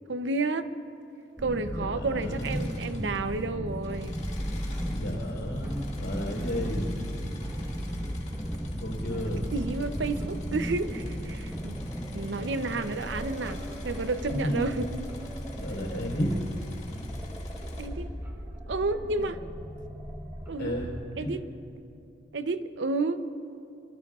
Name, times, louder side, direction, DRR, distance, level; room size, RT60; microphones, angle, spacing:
voice 1, 0.1-0.7 1.4-4.2 9.5-11.8 12.1-15.0 17.8-18.1 18.7-19.4 20.5-20.7 21.2-21.4 22.3-23.6, right 3 dB, 85° right, 11 dB, 0.7 m, -31 dB
sound 1, 1.4-20.9, equal, 15° right, 1.3 m, -35 dB
voice 2, 1.7-2.6 4.9-6.9 8.8-9.5 14.3-14.7 15.5-16.4 20.6-21.4, equal, 75° left, 0 dB, 4.2 m, -33 dB
Engine / Mechanisms, 2.1-3.4 3.7-17.9, left 3 dB, 40° left, 2.0 m, -50 dB
26.0 x 23.0 x 2.4 m, 2.7 s
head